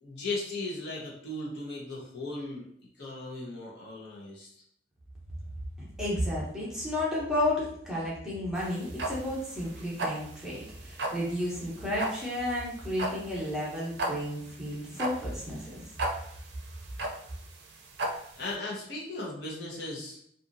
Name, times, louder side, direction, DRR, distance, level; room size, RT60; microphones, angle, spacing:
voice 1, 0.0-2.6 3.0-4.5 18.4-20.2, left 2 dB, 65° left, -4 dB, 0.9 m, -37 dB
voice 2, 6.0-15.8, left 1 dB, 5° right, -7 dB, 0.7 m, -32 dB
sound 1, 8.6-18.5, right 2 dB, 70° right, 0.4 m, -35 dB
2.7 x 2.5 x 2.5 m, 0.66 s
head